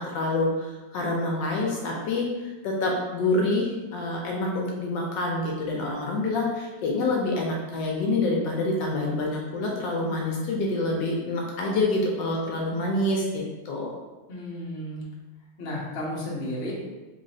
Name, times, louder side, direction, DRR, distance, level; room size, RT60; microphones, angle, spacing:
voice 1, 0.0-13.9, left 2 dB, 75° left, -1 dB, 1.2 m, -27 dB
voice 2, 14.3-15.1 15.6-16.7, left 1 dB, 45° left, -5 dB, 0.9 m, -33 dB
3.8 x 3.0 x 2.7 m, 1.2 s
omnidirectional pair, 2.1 m